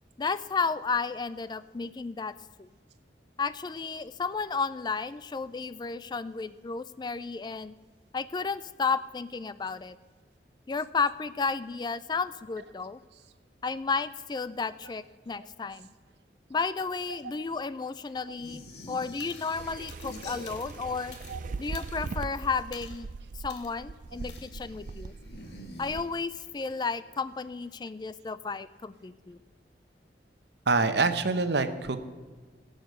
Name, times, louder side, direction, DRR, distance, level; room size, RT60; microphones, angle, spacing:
voice 1, 0.2-2.3 2.6-2.7 3.4-7.7 8.1-10.0 10.7-13.0 13.6-15.9 16.5-21.2 21.6-23.1 23.3-25.1 25.8-29.4, left 4 dB, 25° left, 15 dB, 0.3 m, -32 dB
sound 1, 18.4-20.9 21.2-22.0 24.0-26.5, left 1 dB, 65° left, 1.6 m, -47 dB
sound 2, 19.2-19.5 19.9-21.4 21.7-22.2 22.7-23.0 23.5-23.7 24.3-24.5, left 6 dB, 85° left, 1.6 m, -50 dB
sound 3, 19.5-26.0, right 4 dB, 45° right, 0.4 m, -40 dB
voice 2, 30.7-32.0, right 3 dB, 70° right, 10 dB, 0.9 m, -25 dB
16.5 x 8.0 x 6.6 m, 1.5 s
head